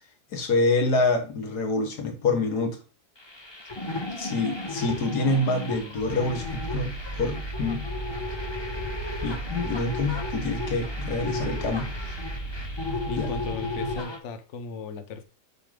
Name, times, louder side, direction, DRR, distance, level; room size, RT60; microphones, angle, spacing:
voice 1, 0.3-2.8 4.2-7.9 9.2-11.9 13.2-13.3, left 3 dB, 90° left, 1.9 m, -26 dB
sound 1, 3.2-14.2, left 2 dB, 20° left, 1.1 m, -34 dB
sound 2, 6.0-14.0, left 6 dB, 75° left, 0.5 m, -41 dB
Mechanical fan, 6.5-13.5, right 6 dB, 60° right, 0.9 m, -37 dB
voice 2, 13.1-15.2, left 4 dB, 55° left, 1.0 m, -36 dB
6.8 x 3.9 x 5.1 m
omnidirectional pair, 1.7 m